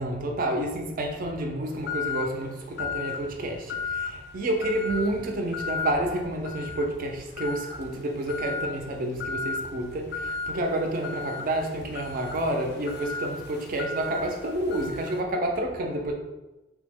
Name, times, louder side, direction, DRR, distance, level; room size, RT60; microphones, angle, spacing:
voice 1, 0.0-16.1, right 1 dB, 45° right, 0.4 m, -29 dB
sound 1, 1.9-2.4 2.8-3.2 3.7-4.2 4.6-5.1 5.5-6.0 6.4-6.9 7.4-7.8 8.3-8.7 9.2-9.6 10.1-10.5 11.0-15.2, left 4 dB, 55° left, 0.3 m, -34 dB
3.2 x 2.0 x 3.4 m
head